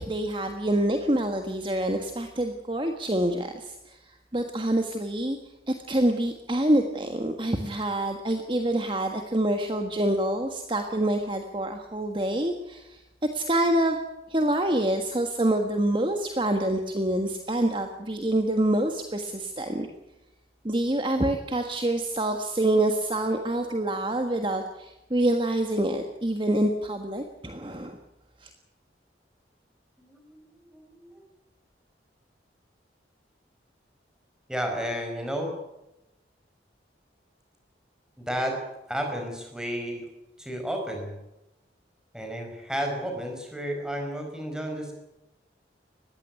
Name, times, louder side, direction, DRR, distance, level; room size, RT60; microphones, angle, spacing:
voice 1, 0.0-5.4 5.7-13.0 13.3-14.0 14.3-19.9 20.6-28.0 28.4-28.5, right 1 dB, 25° right, 5 dB, 1.5 m, -26 dB
voice 2, 30.0-31.2 34.5-35.5 38.2-38.6 38.9-40.0 40.4-41.1 42.1-44.9, equal, 5° right, 3 dB, 5.0 m, -32 dB
20.0 x 15.5 x 9.5 m, 0.97 s
head